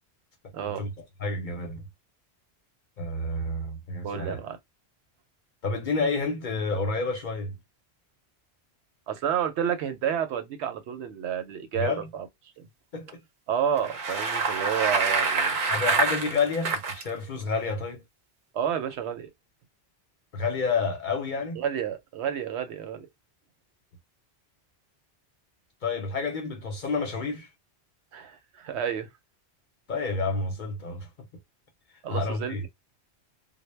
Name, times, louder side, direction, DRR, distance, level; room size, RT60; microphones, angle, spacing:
voice 1, 0.5-0.9 4.0-4.6 9.1-12.3 12.6-12.7 13.5-15.6 18.5-19.3 21.6-23.1 28.1-29.1 32.0-32.7, right 8 dB, 80° right, 0.8 m, -30 dB
voice 2, 1.2-1.8 3.0-4.4 5.6-7.5 11.7-12.1 12.9-13.2 15.7-18.0 20.3-21.6 25.8-27.5 29.9-31.1 32.1-32.6, left 4 dB, 50° left, 0.7 m, -29 dB
Bicycle, 13.7-17.0, right 4 dB, 50° right, 0.7 m, -26 dB
2.1 x 2.0 x 3.1 m
omnidirectional pair, 1.1 m